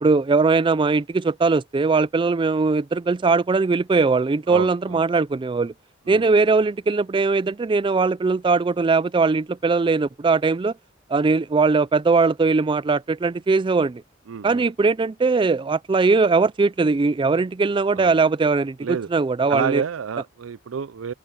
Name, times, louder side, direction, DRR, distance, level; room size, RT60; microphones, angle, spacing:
voice 1, 0.0-5.7 6.1-10.7 11.1-14.0 14.4-19.8, right 4 dB, 25° right, 0.4 m, -20 dB
voice 2, 4.5-5.0 6.1-6.2 14.3-14.6 18.0-18.1 18.8-19.1 19.5-21.1, right 7 dB, 80° right, 0.5 m, -29 dB
open air
head